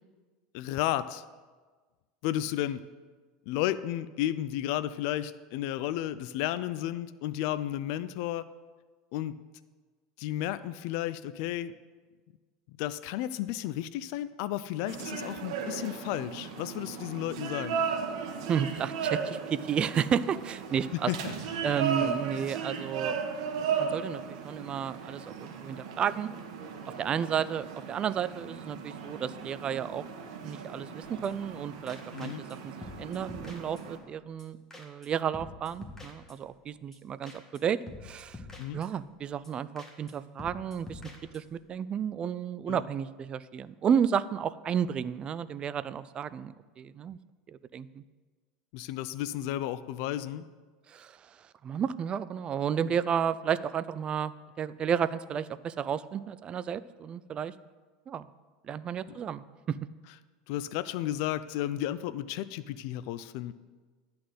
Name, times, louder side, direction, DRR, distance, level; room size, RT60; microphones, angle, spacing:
voice 1, 0.5-1.2 2.2-2.8 3.5-8.5 9.1-9.4 10.2-11.7 12.8-17.8 21.1-21.3 22.0-22.1 32.1-32.4 38.6-38.8 42.7-42.8 48.7-50.4 52.8-52.9 60.5-63.5, left 13 dB, 65° left, 14 dB, 0.4 m, -33 dB
sound 1, 14.9-34.0, right 6 dB, 80° right, 1.3 m, -36 dB
voice 2, 18.5-21.1 21.6-23.2 23.7-26.3 27.0-30.1 30.4-38.4 38.7-41.0 41.3-47.2 47.5-48.0 50.9-57.5 58.1-58.3 58.6-59.8, right 8 dB, 30° right, 16 dB, 0.4 m, -32 dB
sound 2, 31.0-31.6 31.9-32.6 32.8-34.1 34.4-34.5 34.7-35.1 35.3-36.7 36.9-37.0 37.2-37.6 37.9-39.2 39.4-39.5 39.8-40.1 40.4-41.6, left 2 dB, 10° left, 1.6 m, -48 dB
11.0 x 4.3 x 7.8 m, 1.4 s
supercardioid pair, 120°, 3 cm